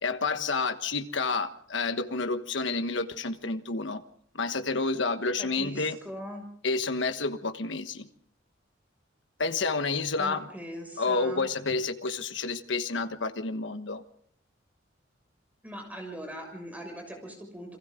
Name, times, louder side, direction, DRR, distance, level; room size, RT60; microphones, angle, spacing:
voice 1, 0.0-4.0 4.3-6.0 6.6-8.1 9.4-10.5 11.0-14.0, left 3 dB, 70° left, 9 dB, 1.3 m, -29 dB
voice 2, 5.4-6.4 10.2-11.5 15.6-17.8, equal, 10° right, 3 dB, 6.3 m, -41 dB
29.5 x 23.0 x 3.8 m, 0.66 s
head